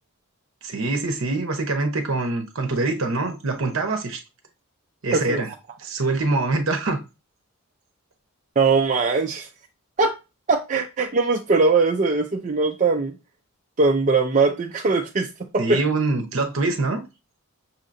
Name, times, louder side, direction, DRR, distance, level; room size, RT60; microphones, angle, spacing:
voice 1, 0.6-4.2 5.0-5.5 5.8-7.0 15.6-17.0, right 3 dB, 65° right, 0.9 m, -24 dB
voice 2, 5.1-5.4 8.6-9.5 10.0-10.1 10.5-13.2 13.8-15.3 15.5-15.8, right 4 dB, 35° right, 0.4 m, -20 dB
6.4 x 2.9 x 2.6 m
head